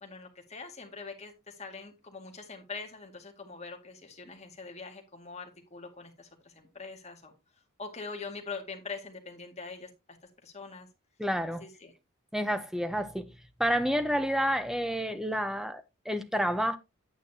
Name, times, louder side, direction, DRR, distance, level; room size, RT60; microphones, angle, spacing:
voice 1, 0.0-7.3 7.8-9.9 10.4-10.9 11.6-11.9, left 4 dB, 30° left, 2.0 m, -43 dB
voice 2, 11.2-11.6 12.3-13.2 13.6-16.8, equal, ahead, 0.7 m, -29 dB
9.1 x 9.0 x 2.8 m
head